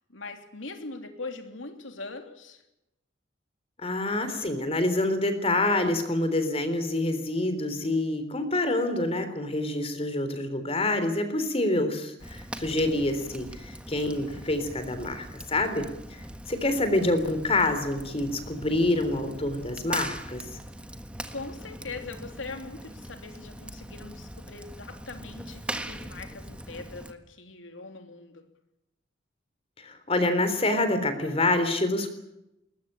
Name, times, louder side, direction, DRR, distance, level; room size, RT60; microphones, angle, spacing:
voice 1, 0.1-2.6 21.3-28.4, left 3 dB, 90° left, 3.3 m, -41 dB
voice 2, 3.8-20.5 29.8-32.1, left 2 dB, 30° left, 3.6 m, -27 dB
Fire, 12.2-27.1, right 1 dB, 5° right, 1.6 m, -41 dB
21.5 x 20.0 x 8.9 m
head